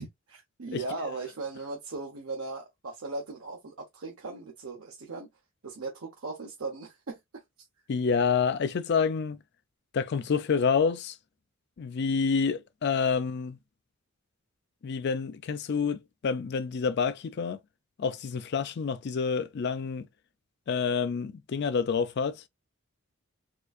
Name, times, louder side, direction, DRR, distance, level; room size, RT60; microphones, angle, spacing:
voice 1, 0.0-5.3 5.6-7.4, right 3 dB, 75° right, 0.8 m, -38 dB
voice 2, 7.9-9.4 9.9-11.2 11.8-13.6 14.8-17.6 18.0-20.1 20.7-22.4, left 5 dB, 55° left, 0.4 m, -28 dB
4.4 x 2.5 x 2.4 m
head